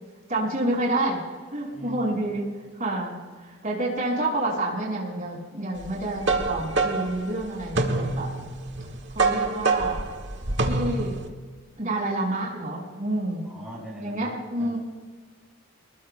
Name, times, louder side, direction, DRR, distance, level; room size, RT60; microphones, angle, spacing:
voice 1, 0.3-1.2 1.5-2.5 2.8-3.2 3.4-8.3 9.1-10.0 10.7-11.2 11.8-13.4 14.0-14.8, right 1 dB, 40° right, -3 dB, 5.7 m, -28 dB
voice 2, 1.7-2.2 13.4-14.8, equal, 5° right, -5 dB, 5.4 m, -39 dB
sound 1, 5.8-11.3, right 3 dB, 55° right, 1.7 m, -26 dB
27.5 x 21.0 x 2.2 m, 1.5 s
head